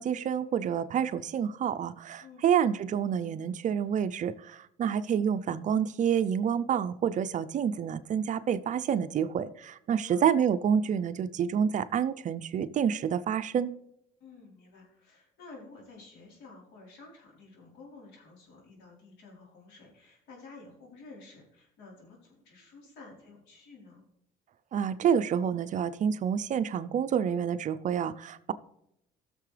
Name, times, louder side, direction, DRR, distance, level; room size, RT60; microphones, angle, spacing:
voice 1, 0.0-13.7 24.7-28.5, right 8 dB, 45° right, 13 dB, 0.6 m, -28 dB
voice 2, 14.2-24.0, left 3 dB, 85° left, -2 dB, 4.0 m, -52 dB
15.0 x 6.7 x 3.3 m, 0.78 s
cardioid pair, 110°, 17 cm